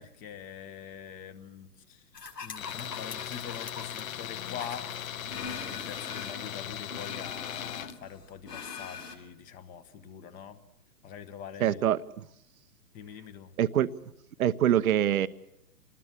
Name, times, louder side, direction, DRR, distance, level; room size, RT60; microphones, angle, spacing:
voice 1, 0.0-2.0 2.4-4.9 5.3-10.6 11.0-11.8 12.9-13.5, left 8 dB, 15° left, 12 dB, 1.1 m, -44 dB
sound 1, 2.1-6.5 6.9-9.1, left 5 dB, 85° left, 7.2 m, -43 dB
Tools, 2.6-8.0, left 10 dB, 55° left, 1.1 m, -38 dB
voice 2, 11.6-12.0 13.6-13.9 14.4-15.3, right 11 dB, 60° right, 13 dB, 1.0 m, -24 dB
27.0 x 20.5 x 7.4 m, 0.80 s
hypercardioid pair, 140°, 48 cm